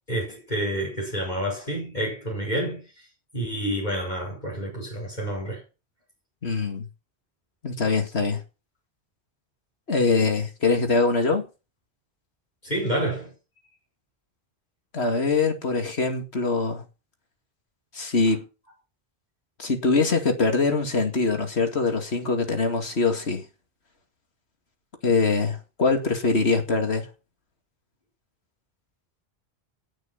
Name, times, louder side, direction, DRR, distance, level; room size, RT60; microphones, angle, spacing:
voice 1, 0.1-3.1 3.3-5.6 12.6-13.3, right 1 dB, 45° left, 5.6 m, -29 dB
voice 2, 6.4-6.8 7.6-8.4 9.9-11.5 14.9-16.8 17.9-18.4 19.6-23.5 25.0-27.1, left 4 dB, 90° left, 2.6 m, -23 dB
19.0 x 6.4 x 5.8 m
omnidirectional pair, 1.1 m